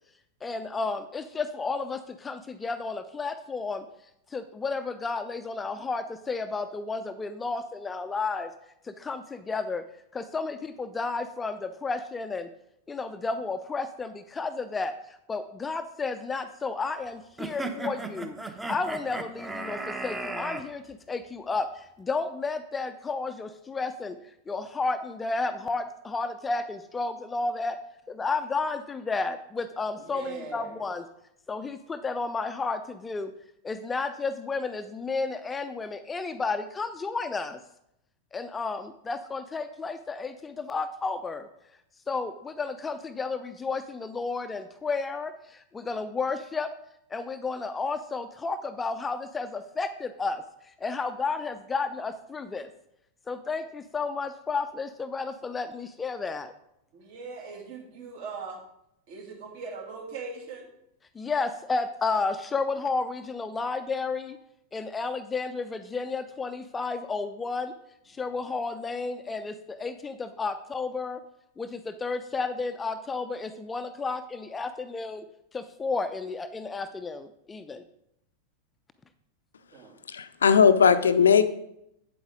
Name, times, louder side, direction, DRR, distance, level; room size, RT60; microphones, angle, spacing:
voice 1, 0.4-3.8 4.3-8.5 8.8-9.8 10.1-12.5 12.9-24.2 24.5-27.8 28.1-31.0 31.5-33.3 33.6-37.6 38.3-41.5 42.1-46.7 47.1-50.4 50.8-52.7 53.3-56.5 61.2-64.4 64.7-67.7 68.1-71.2 71.6-75.2 75.5-77.8, left 4 dB, 15° left, 10 dB, 0.5 m, -32 dB
sound 1, 17.4-20.6, right 2 dB, 10° right, 0.9 m, -35 dB
voice 2, 30.0-30.9 56.9-58.6 59.1-60.7 79.7-79.9, right 5 dB, 50° right, 0 dB, 2.7 m, -40 dB
voice 3, 80.1-81.4, left 6 dB, 70° left, 13 dB, 0.5 m, -18 dB
8.3 x 8.0 x 3.8 m, 0.78 s
figure-of-eight pair, 90°, 0 cm